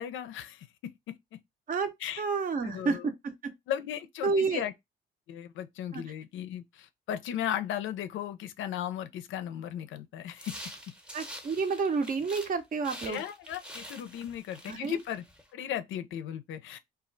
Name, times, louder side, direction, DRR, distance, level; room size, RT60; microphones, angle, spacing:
voice 1, 0.0-1.4 2.0-2.2 2.6-3.1 3.7-4.7 5.3-10.6 13.1-15.2 15.5-16.8, left 10 dB, 80° left, 0.4 m, -36 dB
voice 2, 1.7-3.5 4.2-4.6 5.9-6.0 11.1-13.2 14.7-15.0, right 4 dB, 45° right, 0.6 m, -30 dB
sound 1, 10.3-12.5 12.8-15.4, equal, 5° right, 0.7 m, -46 dB
2.3 x 2.1 x 3.7 m
cardioid pair, 90°, 20 cm